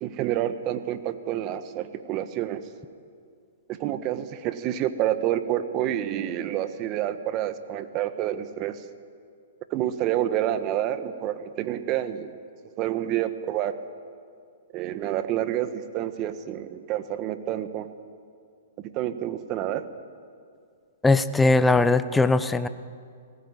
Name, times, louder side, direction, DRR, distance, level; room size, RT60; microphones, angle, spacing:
voice 1, 0.0-2.7 3.7-8.8 9.7-12.3 12.8-13.8 14.7-17.9 18.8-19.9, right 12 dB, 35° right, 11 dB, 1.5 m, -28 dB
voice 2, 21.0-22.7, left 3 dB, 10° left, 13 dB, 0.9 m, -20 dB
20.5 x 18.5 x 9.9 m, 2.2 s
hypercardioid pair, 130°, 0 cm